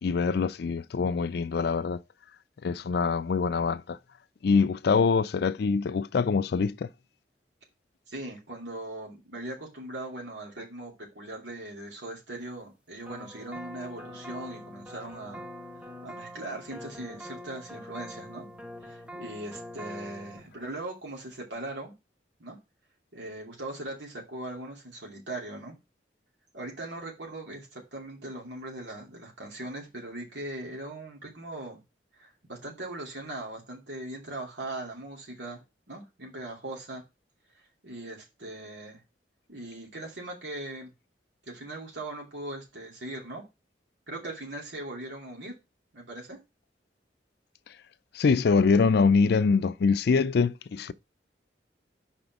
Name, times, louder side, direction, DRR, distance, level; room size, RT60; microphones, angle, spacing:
voice 1, 0.0-2.0 2.6-4.0 4.4-6.9 48.1-50.9, left 5 dB, 65° left, 0.4 m, -24 dB
voice 2, 8.1-15.4 15.8-18.5 18.8-21.9 22.4-22.6 23.1-25.8 26.5-31.8 32.1-35.6 35.9-37.0 37.8-39.0 39.5-40.9 41.5-43.4 44.1-45.5 45.9-46.4, right 1 dB, 85° right, 2.7 m, -40 dB
sound 1, 13.1-20.4, equal, 5° right, 0.9 m, -43 dB
5.2 x 4.3 x 5.9 m
head